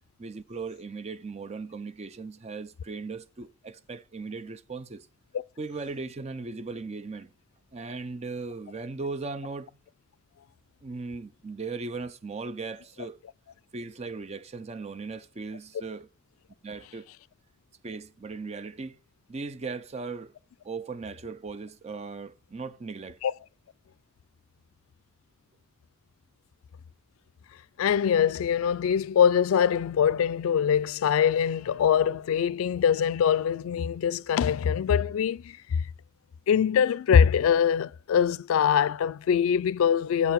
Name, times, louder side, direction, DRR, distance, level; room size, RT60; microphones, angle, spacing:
voice 1, 0.2-5.1 5.6-7.3 7.7-9.7 10.8-13.2 13.7-16.1 16.6-17.1 17.8-19.0 19.3-20.3 20.6-23.2, right 4 dB, 30° right, 0.5 m, -38 dB
voice 2, 27.8-35.8 36.5-40.3, left 8 dB, 85° left, 0.3 m, -23 dB
8.1 x 4.6 x 5.1 m
head